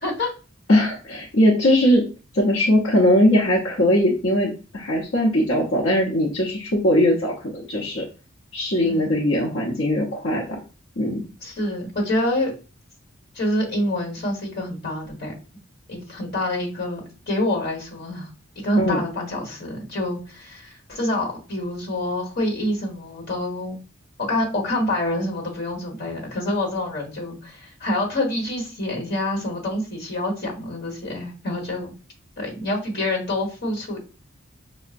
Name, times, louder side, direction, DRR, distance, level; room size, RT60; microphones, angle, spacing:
voice 1, 0.0-0.3 8.8-9.1 11.4-12.5 13.3-15.3 15.9-17.0 17.3-18.3 18.6-23.8 24.2-31.9 32.4-34.0, left 1 dB, 50° left, 0 dB, 1.3 m, -26 dB
voice 2, 0.7-2.1 2.3-8.1 8.5-10.4 11.0-11.3 18.8-19.0, left 1 dB, 70° left, -5 dB, 0.8 m, -20 dB
5.5 x 2.1 x 2.5 m, 0.34 s
head